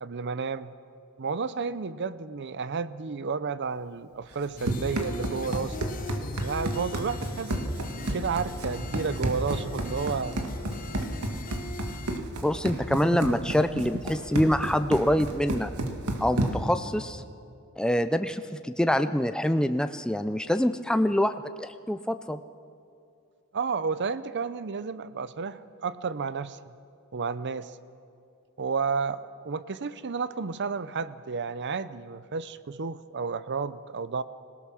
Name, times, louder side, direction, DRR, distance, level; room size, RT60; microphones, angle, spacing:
voice 1, 0.0-0.7 1.2-5.9 6.4-10.4 12.7-13.5 13.9-14.0 23.5-26.6 27.1-27.7 28.6-34.2, right 5 dB, 50° right, 15 dB, 0.6 m, -32 dB
Run, 4.3-16.8, right 1 dB, 80° right, 1.8 m, -32 dB
sound 1, 4.6-12.2, left 2 dB, 40° left, 0.9 m, -40 dB
voice 2, 12.4-15.7 16.2-17.2 17.8-22.4, equal, 5° left, 10 dB, 0.4 m, -25 dB
25.5 x 17.5 x 6.3 m, 2.5 s
head